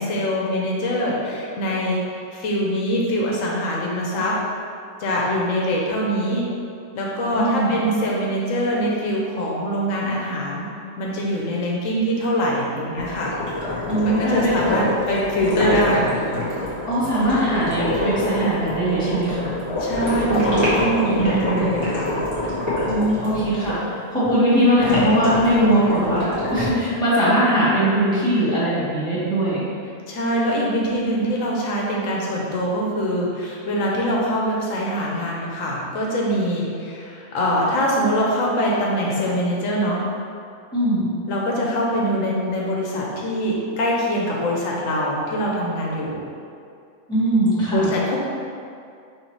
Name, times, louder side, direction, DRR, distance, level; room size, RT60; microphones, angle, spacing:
voice 1, 0.0-4.4 5.0-6.4 6.9-10.7 11.0-13.3 14.1-16.1 19.8-22.2 24.5-24.8 30.1-40.1 41.3-46.2 47.7-48.2, equal, 80° left, -3 dB, 1.1 m, -23 dB
voice 2, 7.3-7.8 13.9-14.6 16.9-19.5 21.1-21.7 22.8-29.6 40.7-41.1 47.1-47.9, right 1 dB, 5° left, -12 dB, 1.3 m, -20 dB
sound 1, 13.0-23.7 24.8-26.7, left 1 dB, 20° right, 1.5 m, -25 dB
5.6 x 3.1 x 3.0 m, 2.4 s
omnidirectional pair, 1.4 m